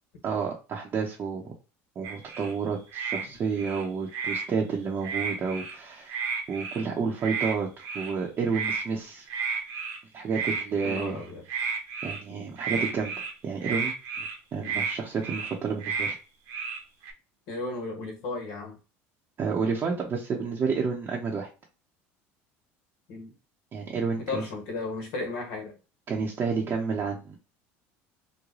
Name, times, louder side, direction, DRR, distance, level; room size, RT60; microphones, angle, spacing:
voice 1, 0.2-1.5 2.0-6.2 6.5-9.3 10.1-11.2 12.0-16.1 19.4-21.5 23.7-24.4 26.1-27.4, right 5 dB, 35° right, -2 dB, 0.8 m, -30 dB
sound 1, 2.0-2.5 2.9-3.2 3.5-4.5 5.0-5.7 6.1-6.8 7.2-7.5 7.8-8.1 8.5-8.8 9.3-10.0 10.3-11.2 11.5-12.2 12.6-13.3 13.6-14.4 14.6-14.9 15.2-15.5 15.8-16.1 16.5-17.1, right 5 dB, 65° right, 1.1 m, -32 dB
voice 2, 10.8-11.4 12.3-12.5 14.6-14.8 17.5-18.8 23.1-23.3 24.3-25.7, left 3 dB, 75° left, 3 dB, 1.3 m, -35 dB
3.2 x 2.2 x 3.7 m, 0.32 s
supercardioid pair, 110°, 6 cm